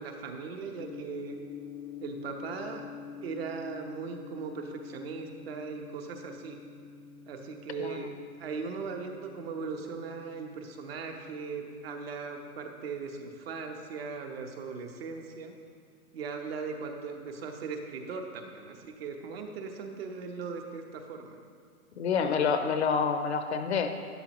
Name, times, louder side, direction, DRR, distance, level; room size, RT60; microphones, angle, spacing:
voice 1, 0.0-1.4 2.0-2.8 3.2-6.6 7.3-8.1 8.4-15.6 16.1-21.4, right 5 dB, 40° right, 3 dB, 1.1 m, -39 dB
Gong, 0.7-14.9, left 6 dB, 10° left, 0.6 m, -48 dB
voice 2, 22.0-23.9, left 6 dB, 45° left, 7 dB, 0.8 m, -28 dB
12.5 x 10.5 x 3.0 m, 2.1 s
hypercardioid pair, 155°, 45 cm